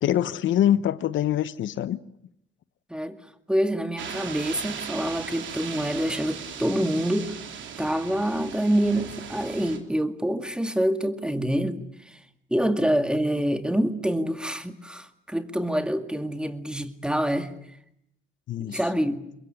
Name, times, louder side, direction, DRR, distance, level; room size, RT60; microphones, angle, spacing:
voice 1, 0.0-2.0 18.5-18.8, left 11 dB, 75° left, 0.9 m, -24 dB
voice 2, 3.5-7.4 7.8-12.2 12.5-17.5 18.7-19.2, equal, 5° right, 2.1 m, -26 dB
sound 1, 4.0-9.8, right 7 dB, 70° right, 3.3 m, -38 dB
23.5 x 22.0 x 10.0 m
cardioid pair, 90°, 20 cm